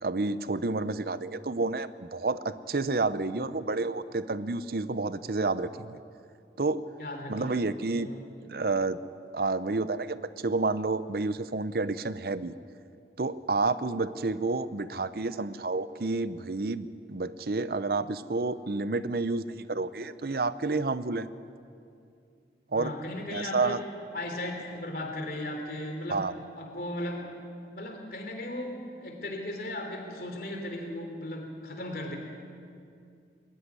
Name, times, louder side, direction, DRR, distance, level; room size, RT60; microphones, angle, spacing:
voice 1, 0.0-6.0 6.6-6.9 7.3-8.1 8.4-9.0 9.3-12.5 13.2-21.3 22.7-23.0 23.3-23.8 26.1-26.3, right 3 dB, 60° right, 14 dB, 0.7 m, -30 dB
voice 2, 7.0-7.5 7.9-8.2 22.7-23.8 24.1-26.2 26.6-27.3 27.7-32.2, left 1 dB, 55° left, 3 dB, 3.3 m, -36 dB
21.0 x 13.5 x 9.8 m, 2.4 s
head